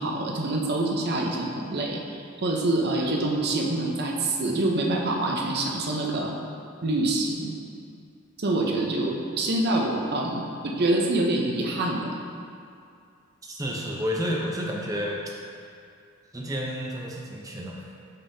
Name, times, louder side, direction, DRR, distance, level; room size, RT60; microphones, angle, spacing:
voice 1, 0.0-6.3 6.8-7.5 8.4-12.1, right 2 dB, 50° right, 0 dB, 0.7 m, -26 dB
voice 2, 13.4-15.2 16.3-17.9, equal, 15° right, -2 dB, 0.7 m, -30 dB
7.1 x 5.4 x 2.7 m, 2.5 s
head